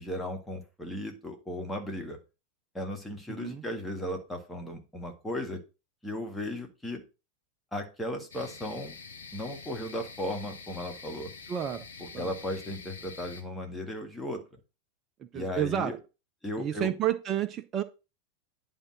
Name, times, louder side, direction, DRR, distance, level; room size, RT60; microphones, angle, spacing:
voice 1, 0.0-2.2 2.7-5.6 6.0-7.0 7.7-9.0 9.3-11.3 12.0-14.4 15.3-16.0 16.4-16.9, left 1 dB, 5° left, 1.8 m, -36 dB
voice 2, 3.3-3.6 11.5-11.8 12.1-12.3 15.2-15.9 16.6-17.8, right 10 dB, 30° right, 0.5 m, -30 dB
sound 1, 8.3-13.4, left 5 dB, 65° left, 1.4 m, -46 dB
9.9 x 3.7 x 6.0 m
figure-of-eight pair, 90°, 0 cm